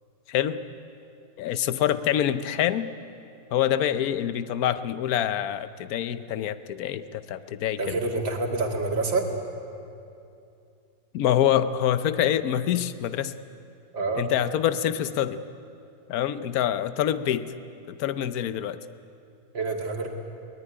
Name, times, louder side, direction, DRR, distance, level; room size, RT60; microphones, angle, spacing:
voice 1, 0.3-0.6 1.4-2.9 3.5-8.0 11.1-13.3 14.1-15.4 16.1-17.5 17.9-18.8, left 10 dB, 60° left, 13 dB, 1.1 m, -26 dB
voice 2, 7.8-9.2 13.9-14.3 19.5-20.1, right 3 dB, 80° right, 2 dB, 3.0 m, -27 dB
22.5 x 19.0 x 9.9 m, 2.6 s
omnidirectional pair, 2.0 m